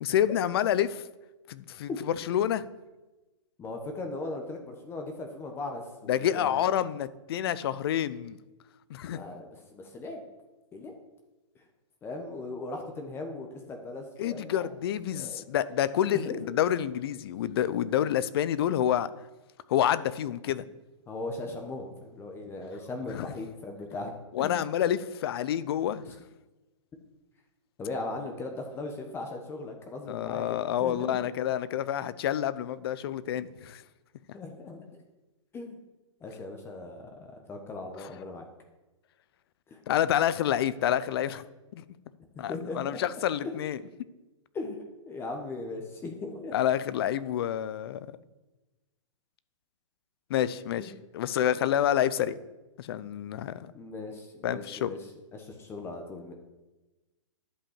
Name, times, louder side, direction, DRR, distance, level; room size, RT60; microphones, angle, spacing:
voice 1, 0.0-1.0 1.5-1.9 2.3-2.7 6.1-8.4 8.9-9.2 14.2-19.1 19.7-20.6 24.3-26.2 30.1-33.8 39.9-41.4 41.7-41.8 42.4-43.8 46.5-48.1 50.3-52.4 52.8-53.7 54.4-54.9, left 10 dB, 45° left, 16 dB, 0.6 m, -28 dB
voice 2, 3.6-6.7 9.1-10.2 10.7-10.9 12.0-14.7 15.1-15.4 16.1-16.4 17.7-17.9 21.1-24.6 26.0-26.1 27.8-31.3 34.3-35.0 35.5-35.8 36.2-38.4 39.7-39.8 42.4-43.2 44.5-46.6 50.8-50.9 53.7-56.3, left 2 dB, 15° left, 3 dB, 1.1 m, -39 dB
11.5 x 5.4 x 7.3 m, 1.1 s
hypercardioid pair, 145°, 17 cm